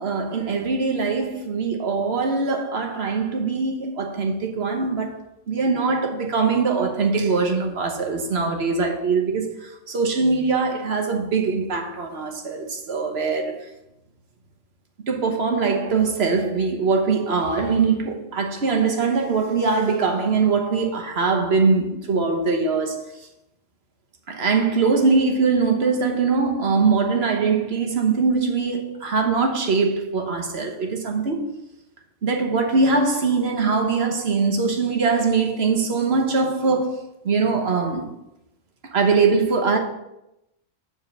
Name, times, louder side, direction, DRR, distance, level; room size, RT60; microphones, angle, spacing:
voice 1, 0.0-5.2 5.5-9.5 9.9-13.6 15.1-23.1 24.3-31.5 32.2-37.0 37.2-38.1 38.9-39.8, right 4 dB, 55° right, 1.3 m, -22 dB
7.2 x 4.4 x 6.7 m
omnidirectional pair, 1.3 m